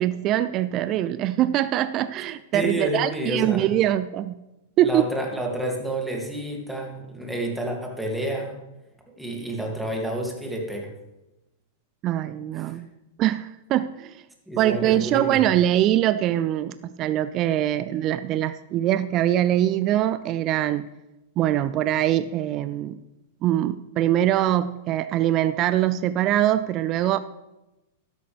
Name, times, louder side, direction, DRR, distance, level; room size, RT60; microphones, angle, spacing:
voice 1, 0.0-4.3 4.8-5.1 12.0-12.9 13.2-14.2 14.6-20.9 21.4-23.0 23.4-27.2, right 12 dB, 40° right, 14 dB, 0.4 m, -23 dB
voice 2, 2.5-3.7 4.8-8.6 9.2-10.9 12.6-12.8 14.5-15.5, right 1 dB, 5° right, 0 dB, 2.6 m, -29 dB
12.5 x 10.5 x 3.5 m, 0.97 s
hypercardioid pair, 105°, 0 cm